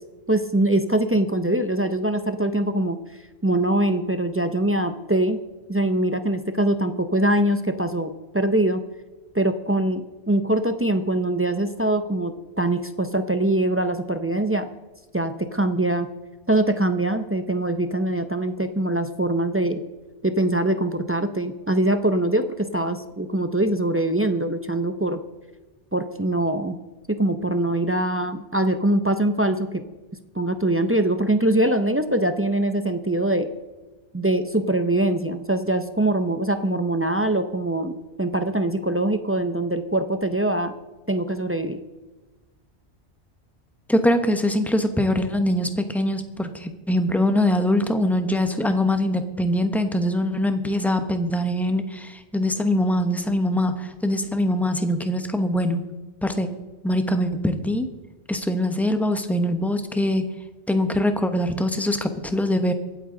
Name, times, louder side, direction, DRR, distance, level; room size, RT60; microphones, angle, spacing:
voice 1, 0.3-3.0 3.4-5.4 5.7-8.8 9.3-14.7 15.1-16.1 16.5-19.8 20.2-25.2 25.9-26.8 27.1-29.8 30.3-33.5 34.1-40.7 41.1-41.8, right 1 dB, 20° right, 8 dB, 0.4 m, -23 dB
voice 2, 43.9-55.8 56.2-56.5 56.8-57.9 58.3-60.3 60.7-62.7, left 1 dB, ahead, 7 dB, 0.8 m, -23 dB
24.0 x 8.3 x 3.8 m, 1.2 s
omnidirectional pair, 1.2 m